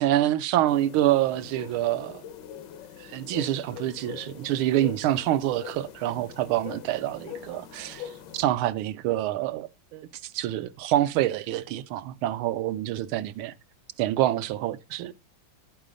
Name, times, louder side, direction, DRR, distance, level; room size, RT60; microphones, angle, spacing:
voice 1, 0.0-2.2 3.0-13.5 14.0-15.1, right 13 dB, 85° right, 1.5 m, -26 dB
sound 1, 0.7-8.5, left 9 dB, 70° left, 1.2 m, -43 dB
11.5 x 5.6 x 5.1 m
omnidirectional pair, 2.3 m